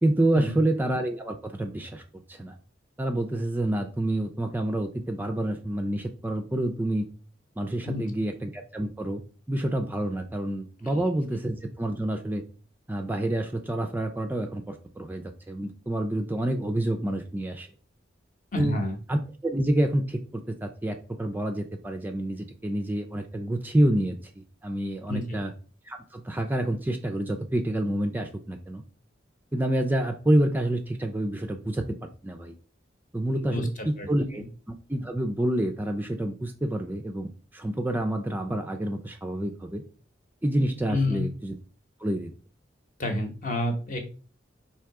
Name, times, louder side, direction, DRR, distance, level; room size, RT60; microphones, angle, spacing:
voice 1, 0.0-2.6 3.0-7.1 7.6-9.2 9.5-12.4 12.9-17.7 18.6-18.8 19.1-25.5 25.9-28.8 29.5-32.5 33.1-39.8 40.4-41.6 42.0-42.3, right 1 dB, 10° right, 5 dB, 0.3 m, -28 dB
voice 2, 18.5-19.0 25.1-25.4 33.4-34.1 40.9-41.3 43.0-44.0, left 1 dB, 45° left, 4 dB, 0.9 m, -29 dB
3.5 x 2.7 x 4.6 m, 0.38 s
head